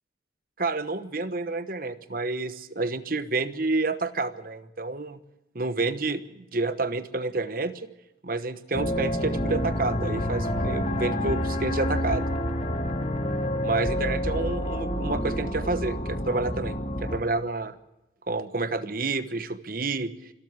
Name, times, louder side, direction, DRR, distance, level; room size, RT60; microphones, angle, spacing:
voice 1, 0.6-5.2 5.5-7.9 8.2-12.3 13.6-17.8 18.3-20.1, right 3 dB, 50° right, 12 dB, 1.1 m, -29 dB
sound 1, 8.7-17.2, equal, 35° left, 2.5 m, -28 dB
25.5 x 13.5 x 8.1 m, 0.92 s
head